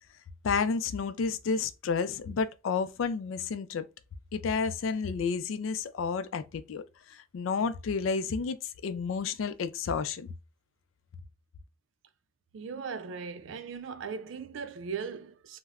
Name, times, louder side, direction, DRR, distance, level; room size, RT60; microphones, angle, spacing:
voice 1, 0.4-3.9 4.3-8.6 8.8-10.3, left 5 dB, 90° left, 0.4 m, -31 dB
voice 2, 12.5-15.6, right 5 dB, 80° right, 0.4 m, -38 dB
2.3 x 2.1 x 3.3 m
head